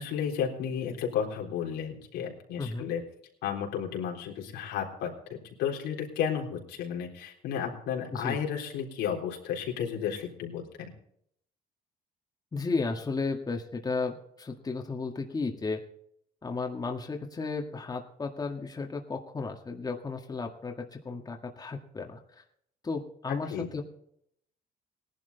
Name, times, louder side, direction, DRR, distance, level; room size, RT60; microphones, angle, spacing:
voice 1, 0.0-3.0 3.4-10.9 23.3-23.7, left 8 dB, 90° left, 0 dB, 3.8 m, -33 dB
voice 2, 2.6-2.9 8.1-8.4 12.5-15.8 16.4-22.2 22.8-23.8, left 4 dB, 20° left, 2 dB, 1.9 m, -34 dB
18.0 x 11.5 x 4.0 m, 0.69 s
cardioid pair, 110°, 17 cm